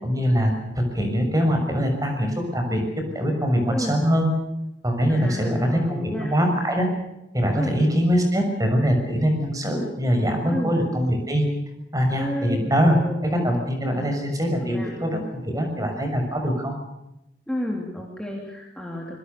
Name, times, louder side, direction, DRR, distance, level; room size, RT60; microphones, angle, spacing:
voice 1, 0.0-4.3 4.8-6.9 7.3-11.5 11.9-13.0 13.2-16.7, equal, 20° right, 4 dB, 6.2 m, -23 dB
voice 2, 5.1-6.3 7.5-7.7 10.5-10.8 12.2-12.6 12.9-13.5 14.5-14.9 17.5-19.2, equal, 5° left, -1 dB, 3.3 m, -31 dB
25.5 x 22.0 x 6.9 m, 0.87 s
head